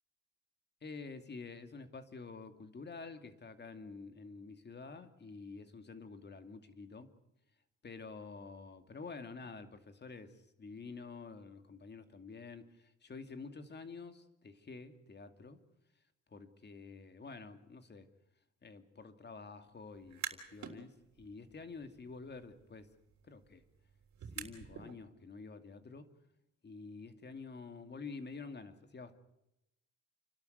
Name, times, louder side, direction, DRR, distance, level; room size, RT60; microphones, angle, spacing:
voice 1, 0.8-7.1 7.8-15.6 16.3-18.1 18.6-22.9 23.2-23.6 24.3-26.1 26.6-29.1, left 4 dB, 35° left, 9 dB, 2.5 m, -49 dB
sound 1, 20.0-20.8 21.2-24.9, right 8 dB, 65° right, 3.6 m, -48 dB
29.5 x 12.5 x 9.5 m, 0.87 s
cardioid pair, 90°, 30 cm